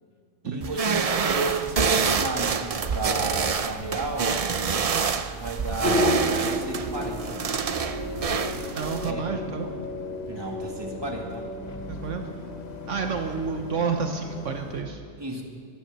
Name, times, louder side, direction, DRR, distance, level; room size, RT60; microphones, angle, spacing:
voice 1, 0.4-4.4 5.1-7.4 9.0-9.3 10.3-11.4 15.2-15.4, right 3 dB, 20° right, 0 dB, 2.2 m, -33 dB
sound 1, 0.6-9.1, right 5 dB, 45° right, 0.5 m, -27 dB
Boat Water vehicle, 5.7-14.8, left 3 dB, 35° left, 1.0 m, -43 dB
sound 2, 5.8-14.9, left 1 dB, 85° left, 3.6 m, -32 dB
voice 2, 8.7-9.7 11.9-12.3 12.9-15.0, right 5 dB, 70° right, 5 dB, 1.2 m, -30 dB
22.5 x 9.5 x 6.7 m, 2.1 s
omnidirectional pair, 1.3 m